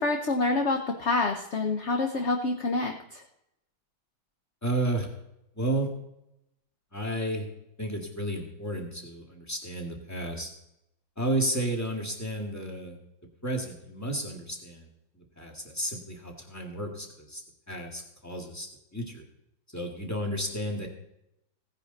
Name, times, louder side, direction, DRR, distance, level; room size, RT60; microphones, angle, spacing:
voice 1, 0.0-3.2, left 3 dB, 50° left, 3 dB, 0.8 m, -27 dB
voice 2, 4.6-5.1 5.6-5.9 6.9-7.5 7.8-10.5 11.2-13.0 13.4-14.9 15.1-17.4 17.7-19.2 19.7-20.9, right 1 dB, 10° left, 2 dB, 1.9 m, -32 dB
16.5 x 9.9 x 4.0 m, 0.84 s
omnidirectional pair, 2.2 m